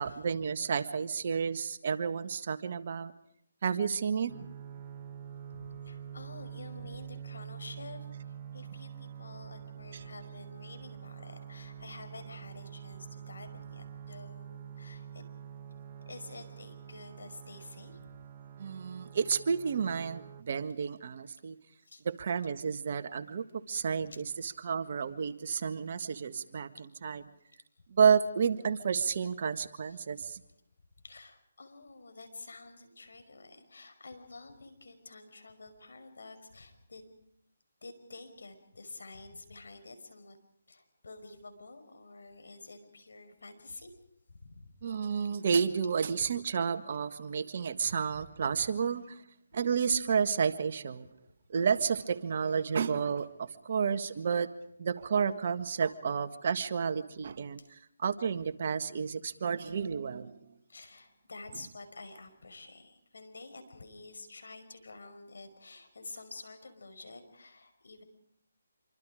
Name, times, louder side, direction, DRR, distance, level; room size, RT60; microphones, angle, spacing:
voice 1, 0.0-3.1 3.6-4.3 9.9-10.0 18.6-21.5 22.0-26.7 27.0-27.2 28.0-30.4 44.8-49.2 49.5-51.1 51.5-54.5 54.8-57.6 58.0-60.5, right 6 dB, 50° right, 9 dB, 1.7 m, -31 dB
sound 1, 4.3-20.4, right 9 dB, 30° right, 1.5 m, -46 dB
voice 2, 5.5-15.2 16.1-18.1 21.8-22.0 24.1-24.2 29.8-30.0 30.4-30.6 31.0-37.1 37.8-40.4 40.7-43.9 44.3-44.7 57.6-57.7 59.7-59.8 60.7-68.0, left 3 dB, 75° left, 8 dB, 5.5 m, -49 dB
27.0 x 24.5 x 5.0 m, 0.72 s
hypercardioid pair, 160°, 0 cm